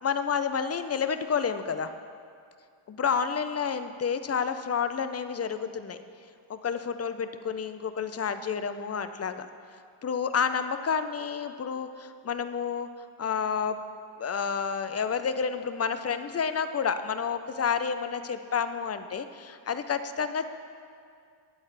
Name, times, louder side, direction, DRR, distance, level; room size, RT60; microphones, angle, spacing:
voice 1, 0.0-1.9 2.9-6.0 6.5-9.5 10.0-12.9 13.2-13.8 14.2-20.5, left 6 dB, 35° left, 10 dB, 0.4 m, -30 dB
13.5 x 9.0 x 3.3 m, 2.3 s
wide cardioid pair, 140°, 49 cm